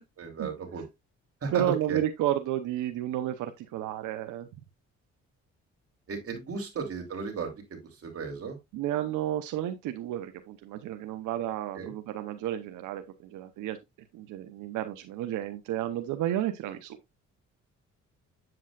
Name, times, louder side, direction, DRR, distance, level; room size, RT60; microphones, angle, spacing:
voice 1, 0.2-0.9 1.4-2.0 6.1-8.6 11.7-11.9, right 5 dB, 50° right, 3.0 m, -35 dB
voice 2, 1.5-4.5 8.7-13.8 14.1-17.0, right 12 dB, 90° right, 0.8 m, -32 dB
7.9 x 7.5 x 2.4 m
cardioid pair, 90°, 30 cm